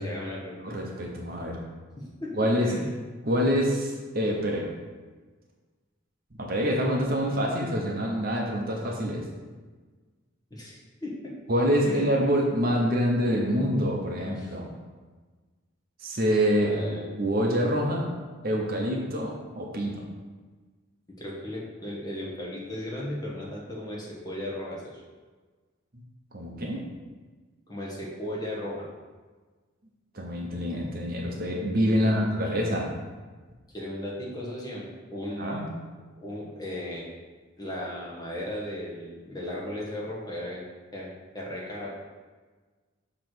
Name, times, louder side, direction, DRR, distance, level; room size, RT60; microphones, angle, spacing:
voice 1, 0.0-0.7 2.0-2.3 2.6-2.9 10.5-11.3 11.9-12.2 14.2-14.5 16.6-17.1 21.2-25.0 27.7-28.9 32.0-32.4 33.7-34.9 35.1-35.7 36.2-37.1 37.6-40.6 40.9-42.0, left 1 dB, 20° left, -5 dB, 1.3 m, -36 dB
voice 2, 0.6-1.6 2.3-2.7 3.3-4.7 6.4-9.2 11.5-14.7 16.0-16.7 17.2-18.1 18.4-20.0 26.3-26.8 30.1-32.9 35.4-35.6, equal, 45° right, -1 dB, 1.0 m, -26 dB
7.1 x 3.3 x 6.1 m, 1.4 s
head